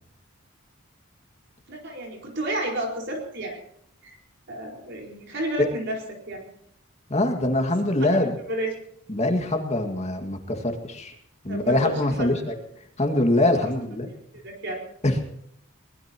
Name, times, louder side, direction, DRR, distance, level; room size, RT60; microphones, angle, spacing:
voice 1, 1.7-3.6 4.0-4.2 4.5-6.4 8.0-8.1 8.5-8.7 11.5-12.3 14.3-14.8, right 1 dB, 60° right, 0 dB, 4.6 m, -31 dB
voice 2, 7.1-8.3 9.1-11.1 11.4-12.5 13.0-14.1 15.0-15.2, left 1 dB, 35° left, 5 dB, 2.0 m, -23 dB
23.0 x 20.0 x 3.0 m, 0.71 s
head